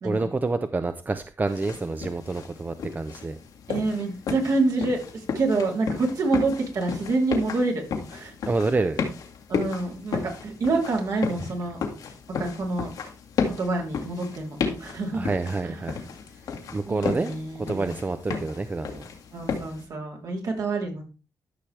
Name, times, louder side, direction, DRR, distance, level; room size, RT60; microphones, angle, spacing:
voice 1, 0.0-3.4 8.5-9.1 15.1-16.0 16.7-19.0, right 3 dB, 30° right, 0.7 m, -28 dB
sound 1, 1.5-19.8, left 5 dB, 85° left, 1.9 m, -34 dB
voice 2, 3.7-7.8 8.1-8.3 9.5-11.8 12.4-12.9 13.4-15.2 15.6-15.8 16.9-17.9 19.3-21.0, right 3 dB, 65° right, 3.2 m, -27 dB
13.5 x 5.9 x 3.4 m
cardioid pair, 80°, 6 cm